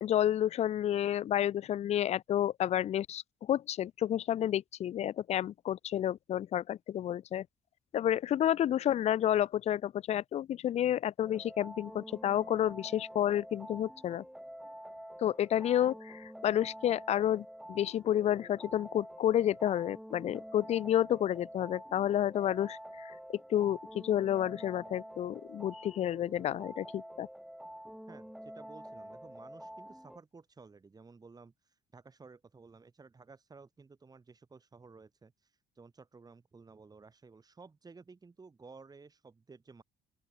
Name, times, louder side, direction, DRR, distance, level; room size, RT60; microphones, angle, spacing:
voice 1, 0.0-7.4 7.9-14.2 15.2-23.1 23.5-27.3, left 11 dB, 40° left, 0.4 m, -30 dB
sound 1, 11.2-30.2, equal, ahead, 0.9 m, -48 dB
voice 2, 28.1-39.8, right 4 dB, 20° right, 2.7 m, -55 dB
open air
cardioid pair, 110°, 17 cm